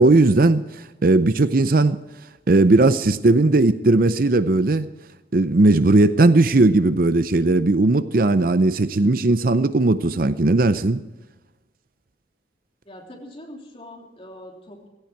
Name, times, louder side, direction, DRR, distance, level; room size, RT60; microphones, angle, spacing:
voice 1, 0.0-2.0 2.5-4.9 5.3-11.0, right 2 dB, 50° right, 0.6 m, -17 dB
voice 2, 12.8-14.9, left 1 dB, 30° left, 3.2 m, -42 dB
17.0 x 15.0 x 4.6 m
head